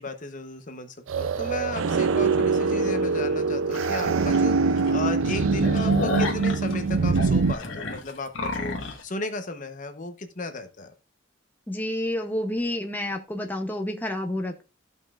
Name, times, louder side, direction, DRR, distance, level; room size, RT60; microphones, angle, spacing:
voice 1, 0.0-10.9, left 2 dB, 40° left, 8 dB, 0.9 m, -35 dB
sound 1, 1.1-7.5, right 4 dB, 80° right, 0.5 m, -23 dB
sound 2, 3.7-3.9 4.3-4.4 4.8-4.9 5.2-9.0, left 3 dB, 70° left, 1.3 m, -31 dB
voice 2, 11.7-14.6, left 1 dB, 10° left, 3 dB, 0.7 m, -29 dB
14.5 x 5.4 x 2.4 m, 0.29 s
head